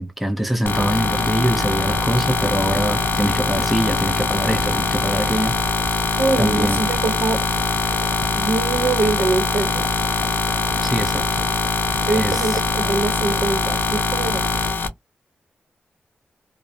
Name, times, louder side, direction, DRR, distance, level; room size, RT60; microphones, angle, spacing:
voice 1, 0.0-5.6 5.9-6.0 6.4-6.8 10.8-11.4 12.1-12.6, right 1 dB, ahead, 0.5 m, -23 dB
sound 1, 0.6-14.9, left 3 dB, 60° left, 0.5 m, -22 dB
voice 2, 6.2-7.4 8.4-9.9 12.1-14.4, right 3 dB, 70° right, 0.8 m, -23 dB
2.4 x 2.0 x 2.5 m
wide cardioid pair, 100°, 4 cm